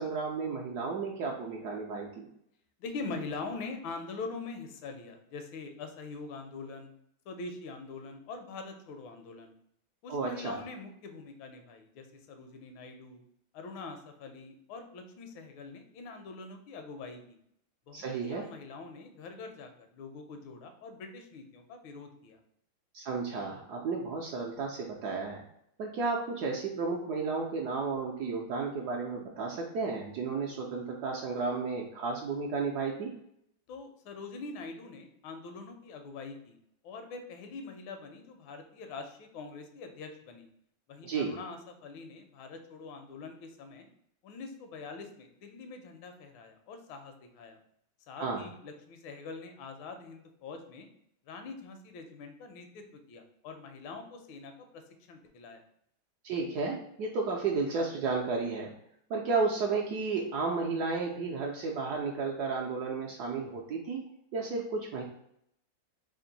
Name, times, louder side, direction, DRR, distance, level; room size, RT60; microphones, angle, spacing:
voice 1, 0.0-2.3 10.1-10.6 17.9-18.5 22.9-25.4 25.8-33.1 41.0-41.3 48.2-48.4 56.2-58.7 59.1-64.0 64.3-65.0, right 4 dB, 75° right, -1 dB, 0.9 m, -33 dB
voice 2, 2.8-6.9 7.2-9.5 10.0-13.2 13.5-17.4 17.9-22.4 33.7-36.6 36.8-40.5 40.9-43.9 44.2-47.6 48.1-50.9 51.2-54.8 55.1-55.6, left 4 dB, 80° left, 6 dB, 1.4 m, -44 dB
3.6 x 2.5 x 3.9 m, 0.74 s
omnidirectional pair, 2.2 m